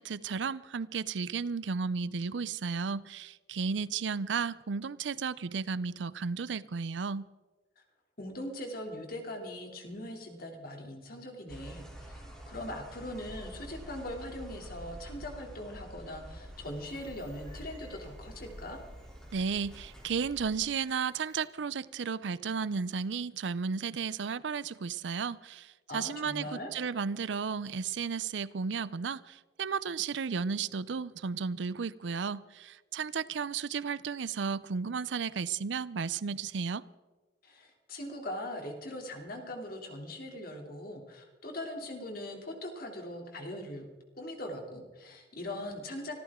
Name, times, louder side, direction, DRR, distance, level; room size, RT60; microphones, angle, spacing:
voice 1, 0.0-7.3 19.3-36.9, right 5 dB, 75° right, 0.5 m, -34 dB
voice 2, 8.2-12.2 12.5-18.8 25.9-26.7 37.4-43.9 44.2-46.2, left 1 dB, 55° left, 3.0 m, -41 dB
sound 1, 11.5-20.5, right 1 dB, 5° left, 3.2 m, -47 dB
sound 2, 16.5-21.7, equal, 25° left, 5.0 m, -63 dB
25.0 x 14.0 x 3.7 m
head